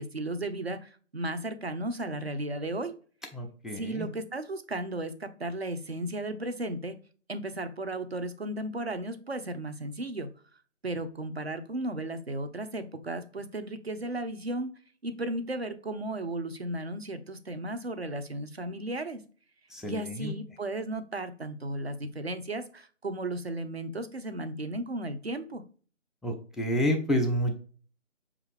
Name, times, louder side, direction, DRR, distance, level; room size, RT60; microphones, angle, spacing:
voice 1, 0.0-2.9 3.7-7.0 7.3-10.3 10.8-14.7 15.0-19.2 19.8-25.6, right 1 dB, 55° right, 10 dB, 0.5 m, -35 dB
voice 2, 3.3-4.1 19.7-20.3 26.2-27.6, equal, ahead, 4 dB, 0.4 m, -29 dB
5.8 x 2.4 x 3.3 m, 0.40 s
figure-of-eight pair, 160°, 39 cm